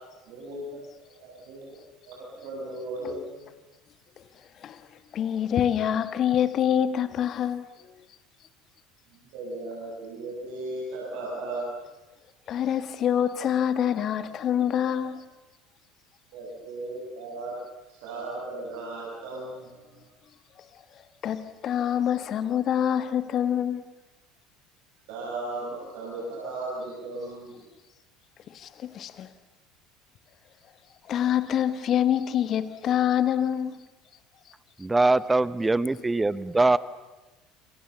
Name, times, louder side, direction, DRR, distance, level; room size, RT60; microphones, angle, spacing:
voice 1, 0.3-1.7 2.1-3.5 9.1-11.6 16.3-17.6 17.9-20.0 25.1-27.6, right 2 dB, 55° right, -3 dB, 7.7 m, -36 dB
voice 2, 5.1-7.6 12.5-15.2 21.2-23.8 28.5-29.3 31.1-33.7, left 9 dB, 40° left, 13 dB, 1.7 m, -26 dB
voice 3, 34.8-36.8, right 2 dB, 10° right, 18 dB, 1.0 m, -22 dB
29.5 x 28.0 x 7.1 m, 1.1 s
figure-of-eight pair, 65°, 0 cm